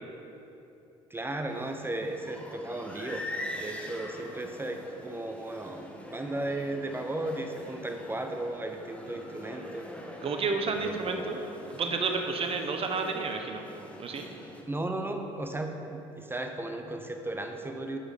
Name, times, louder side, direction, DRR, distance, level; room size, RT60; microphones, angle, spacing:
voice 1, 1.1-9.9 10.7-11.3 14.7-18.0, right 1 dB, 15° right, 5 dB, 0.8 m, -35 dB
sound 1, 1.5-14.6, left 1 dB, 10° left, 1.6 m, -44 dB
voice 2, 10.2-11.4 11.7-13.6 14.0-14.3, right 4 dB, 40° right, 4 dB, 1.2 m, -30 dB
9.6 x 6.2 x 5.4 m, 2.9 s
hypercardioid pair, 70°, 14 cm